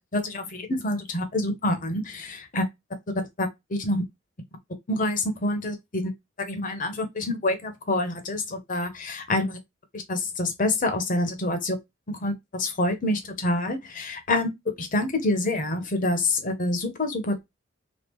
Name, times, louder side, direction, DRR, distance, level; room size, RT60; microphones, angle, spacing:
voice 1, 0.0-2.6 3.4-4.0 4.9-6.1 6.4-9.6 9.9-11.8 12.1-14.5 14.8-17.4, left 2 dB, 45° left, 0.9 m, -27 dB
3.1 x 2.3 x 3.5 m
head